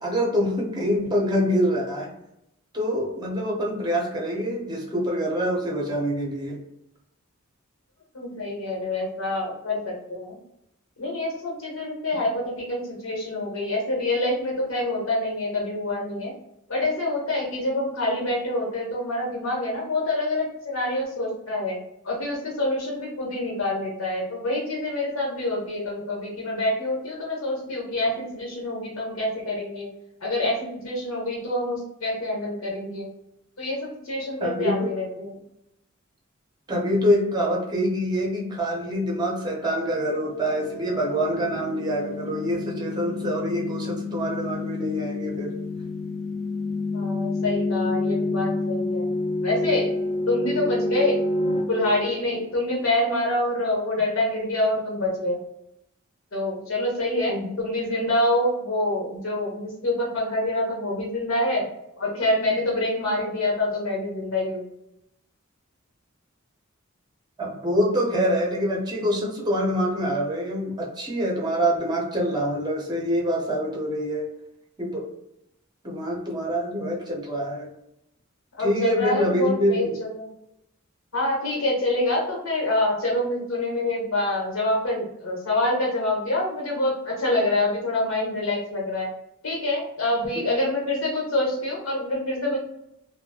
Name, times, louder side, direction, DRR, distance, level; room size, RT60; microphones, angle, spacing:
voice 1, 0.0-2.1 2.7-6.6 34.4-34.9 36.7-45.5 57.3-57.5 67.4-74.3 74.8-75.0 75.8-77.7 78.6-79.9, equal, 20° right, -2 dB, 0.7 m, -25 dB
voice 2, 8.1-10.4 11.0-16.3 16.7-21.8 22.0-29.9 30.2-33.1 33.6-35.3 46.9-49.1 49.4-49.9 50.3-51.2 51.7-55.4 56.3-61.7 62.0-64.6 78.6-80.3 81.1-89.1 89.4-92.6, left 1 dB, 75° left, -2 dB, 1.2 m, -26 dB
sound 1, 40.1-52.9, left 2 dB, 35° left, 0.5 m, -29 dB
2.7 x 2.2 x 2.7 m, 0.81 s
head